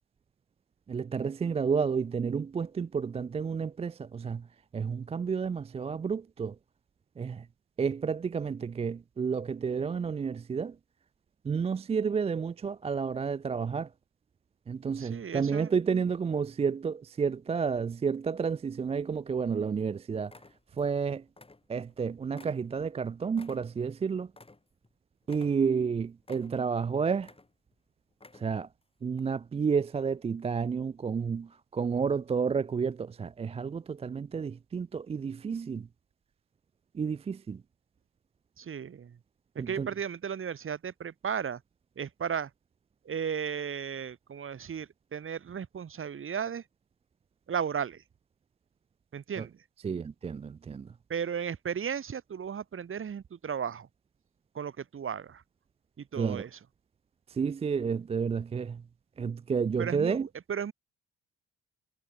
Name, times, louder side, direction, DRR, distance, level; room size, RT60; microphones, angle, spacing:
voice 1, 0.9-4.5 4.7-6.6 7.2-7.5 7.8-10.8 11.4-13.9 14.7-20.3 20.8-21.2 21.7-24.3 25.3-27.3 28.3-28.7 29.0-35.9 36.9-37.6 39.6-39.9 49.4-49.5 49.8-50.9 56.2-56.4 57.3-58.8 59.2-60.3, right 6 dB, 20° right, 0.3 m, -31 dB
voice 2, 15.0-15.7 38.6-39.2 39.7-41.6 41.9-42.5 43.0-46.6 47.5-48.0 49.1-49.6 51.1-53.9 54.5-55.4 56.0-56.5 59.8-60.7, right 7 dB, 45° right, 1.8 m, -35 dB
sound 1, 18.7-19.4 19.8-19.9 20.2-21.0 21.3-22.0 22.3-24.9 25.2-25.9 26.2-26.8 27.2-27.8 28.1-28.7 29.1-29.2, left 3 dB, 20° left, 6.5 m, -55 dB
cardioid pair, 90°, 30 cm